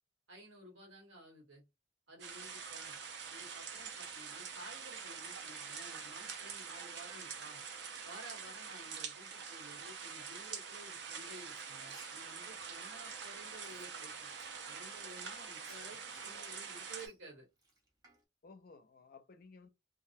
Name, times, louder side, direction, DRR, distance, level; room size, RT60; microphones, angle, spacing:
voice 1, 0.3-1.6 2.1-2.9 3.3-7.6 8.0-14.3 14.6-17.5, right 1 dB, 80° right, 1.3 m, -54 dB
sound 1, 2.2-17.1, right 6 dB, 60° right, 0.5 m, -45 dB
Frying (food), 11.5-14.6 15.0-18.2, right 2 dB, 20° right, 0.6 m, -63 dB
voice 2, 16.2-16.6 18.4-19.7, left 4 dB, 50° left, 0.4 m, -58 dB
2.3 x 2.1 x 2.6 m
head